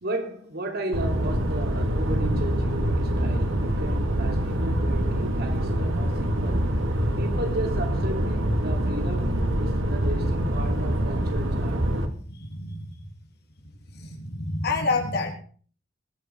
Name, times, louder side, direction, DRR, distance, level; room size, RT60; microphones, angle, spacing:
voice 1, 0.0-6.7 7.2-11.9, right 1 dB, 55° right, 3.3 m, -34 dB
sound 1, 0.9-12.1, right 1 dB, 80° right, 2.2 m, -25 dB
Bass guitar, 2.1-11.9, equal, 20° left, 4.0 m, -36 dB
voice 2, 11.9-12.9 13.9-15.3, left 3 dB, 55° left, 3.4 m, -29 dB
20.0 x 8.1 x 5.3 m
head